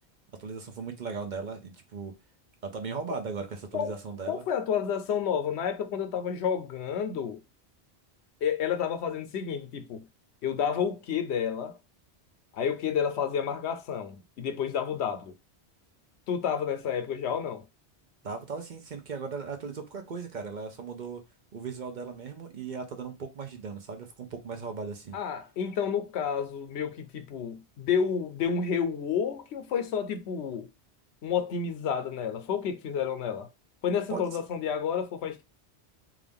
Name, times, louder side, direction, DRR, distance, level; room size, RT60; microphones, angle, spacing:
voice 1, 0.3-2.1 2.6-4.4 18.2-21.2 21.5-25.2 34.1-34.4, right 5 dB, 50° right, 0.7 m, -37 dB
voice 2, 4.3-7.4 8.4-10.0 10.4-11.8 12.5-15.3 16.3-17.6 25.1-30.7 31.2-33.5 33.8-35.4, left 7 dB, 80° left, 0.9 m, -30 dB
3.6 x 2.4 x 3.4 m
omnidirectional pair, 1.1 m